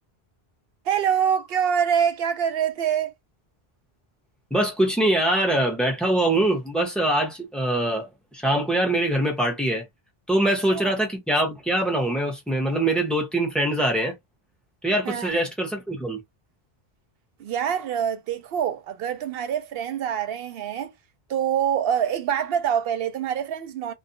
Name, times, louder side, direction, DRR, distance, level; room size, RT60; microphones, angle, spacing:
voice 1, 0.9-3.1 10.4-10.9 15.1-15.3 17.4-20.9 21.3-23.9, right 8 dB, 70° right, 0.8 m, -25 dB
voice 2, 4.5-9.8 10.3-14.1 14.8-16.2, right 1 dB, ahead, 0.8 m, -23 dB
2.5 x 2.1 x 2.7 m
omnidirectional pair, 1.0 m